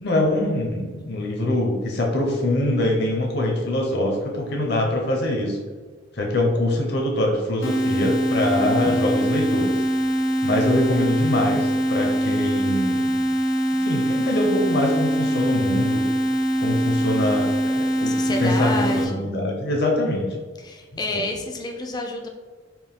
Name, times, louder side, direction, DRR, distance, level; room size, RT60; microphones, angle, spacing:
voice 1, 0.0-5.6 6.1-9.7 10.4-13.1 13.8-16.0 16.6-18.1 18.4-20.3 21.1-21.2, left 1 dB, 55° left, 0 dB, 0.8 m, -23 dB
sound 1, 7.6-19.0, right 1 dB, 85° left, 0.6 m, -23 dB
voice 2, 18.1-19.3 20.6-22.3, left 2 dB, 20° left, 3 dB, 0.3 m, -29 dB
4.3 x 2.2 x 3.6 m, 1.4 s
head